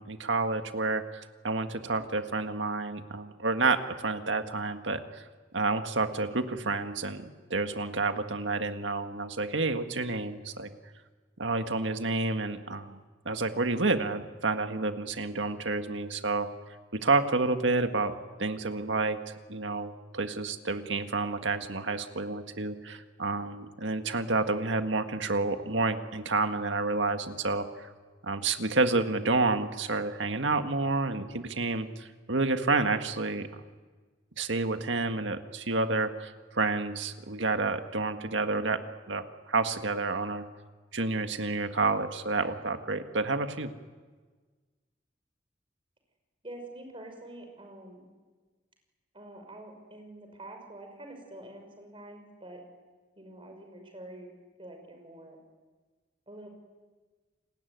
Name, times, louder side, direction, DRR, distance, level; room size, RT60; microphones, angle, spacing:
voice 1, 0.0-5.2 5.5-7.2 7.5-10.7 11.4-13.0 13.3-16.5 16.9-18.1 18.4-19.2 19.5-27.7 28.2-33.5 34.4-38.8 39.1-40.5 40.9-43.7, right 3 dB, 85° right, 7 dB, 1.8 m, -29 dB
voice 2, 46.4-48.1 49.1-52.6 53.2-54.3 54.6-55.4 56.3-56.5, right 1 dB, 30° right, 4 dB, 5.8 m, -46 dB
29.5 x 20.0 x 9.5 m, 1.4 s
head